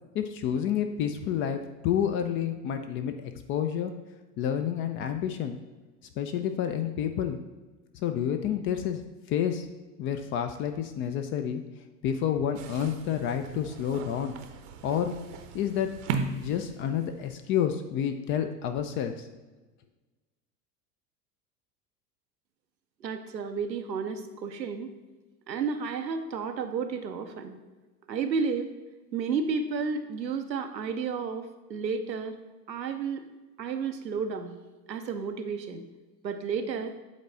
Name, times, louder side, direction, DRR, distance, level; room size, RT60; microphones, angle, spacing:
voice 1, 0.1-3.9 4.4-5.6 6.2-7.4 8.0-9.0 9.3-9.7 10.0-11.6 12.0-14.3 14.8-15.1 15.5-15.9 16.4-19.3, left 9 dB, 30° left, 7 dB, 0.4 m, -29 dB
sound 1, 12.6-17.3, right 5 dB, 55° right, 0.8 m, -37 dB
voice 2, 23.0-24.9 25.5-27.6 28.1-28.7 29.1-32.4 32.7-33.2 33.6-34.5 34.9-35.8 36.2-36.9, right 5 dB, 90° right, 7 dB, 0.7 m, -32 dB
8.1 x 3.9 x 4.0 m, 1.2 s
figure-of-eight pair, 80°, 50 cm